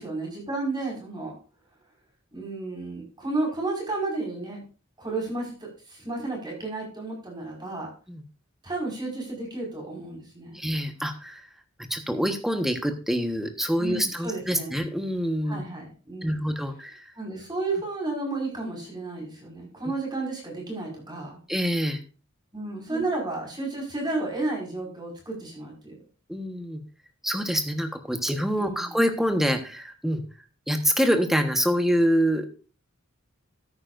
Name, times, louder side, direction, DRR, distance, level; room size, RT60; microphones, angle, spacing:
voice 1, 0.0-1.3 2.3-4.6 5.0-7.9 8.6-10.6 13.8-14.8 15.4-16.4 17.2-21.4 22.5-25.9 28.6-28.9, right 2 dB, 20° right, -1 dB, 5.2 m, -32 dB
voice 2, 10.5-11.5 11.9-15.6 16.2-17.1 21.5-22.0 22.9-23.0 26.3-26.8 27.2-30.2 30.7-32.5, equal, ahead, 6 dB, 1.3 m, -26 dB
13.5 x 10.0 x 2.6 m, 0.34 s
head